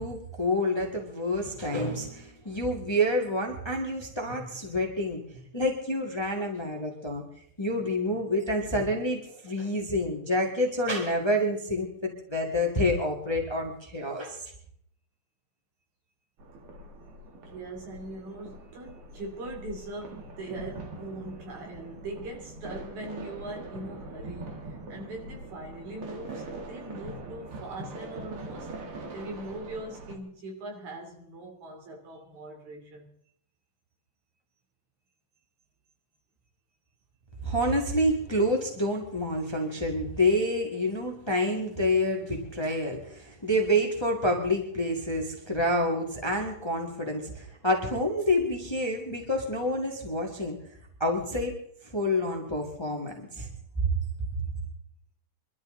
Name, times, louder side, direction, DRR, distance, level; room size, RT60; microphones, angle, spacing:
voice 1, 0.0-5.2 5.5-7.2 7.6-14.5 37.4-50.6 51.0-51.5 51.9-53.5, left 1 dB, 10° left, 2 dB, 1.7 m, -28 dB
sound 1, 16.4-30.2, right 2 dB, 50° right, 2.6 m, -42 dB
voice 2, 17.5-28.7 29.1-33.1, right 1 dB, 75° right, 1 dB, 4.6 m, -41 dB
24.0 x 12.5 x 3.9 m, 0.67 s
omnidirectional pair, 3.3 m